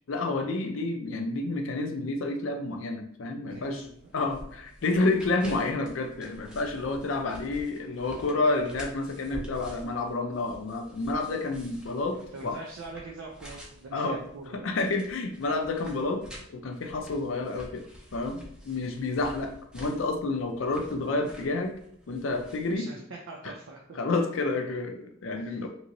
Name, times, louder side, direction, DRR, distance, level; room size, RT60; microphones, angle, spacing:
voice 1, 0.1-3.8 4.1-12.6 13.9-14.2 14.6-16.2 16.5-17.8 18.1-21.7 22.1-22.9 23.4-23.5 24.0-25.7, left 3 dB, 80° left, 4 dB, 0.5 m, -29 dB
voice 2, 3.4-4.3 12.2-14.7 22.7-24.0 25.4-25.6, right 3 dB, 90° right, -1 dB, 0.5 m, -43 dB
sound 1, 3.5-22.7, equal, 5° right, 0.5 m, -48 dB
3.0 x 2.9 x 2.6 m, 0.69 s
head